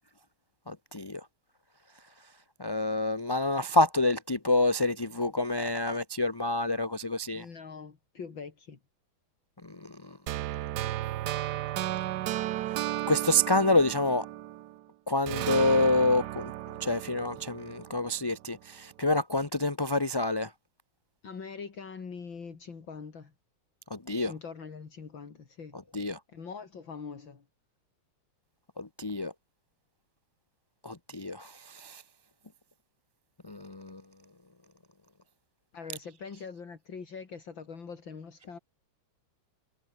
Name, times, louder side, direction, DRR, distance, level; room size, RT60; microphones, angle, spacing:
voice 1, 0.7-1.2 2.6-7.4 9.6-10.2 13.1-14.2 15.1-16.5 16.8-20.5 23.9-24.3 25.9-26.2 28.8-29.3 30.8-32.0 33.4-34.0, left 2 dB, 20° left, 0.7 m, -27 dB
voice 2, 7.3-8.8 21.2-23.3 24.2-25.8 26.3-27.5 35.7-38.6, left 5 dB, 65° left, 3.5 m, -43 dB
sound 1, 10.3-14.8 15.3-18.3, right 14 dB, 70° right, 1.0 m, -34 dB
omnidirectional pair, 2.3 m